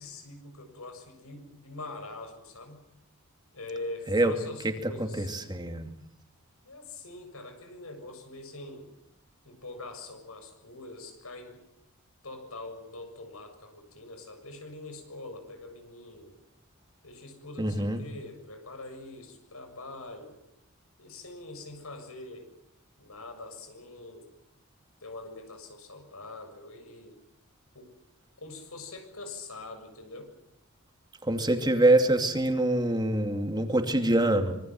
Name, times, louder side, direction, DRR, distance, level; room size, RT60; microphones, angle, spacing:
voice 1, 0.0-2.8 3.5-5.4 6.6-8.9 9.4-11.6 12.2-16.4 17.0-20.4 21.0-22.5 23.0-24.3 25.0-27.2 27.7-27.9 28.4-30.3, left 2 dB, 90° left, 6 dB, 7.2 m, -43 dB
voice 2, 4.6-5.9 17.6-18.0 31.2-34.6, right 1 dB, 20° right, 6 dB, 2.6 m, -25 dB
26.0 x 23.5 x 7.7 m, 0.76 s
head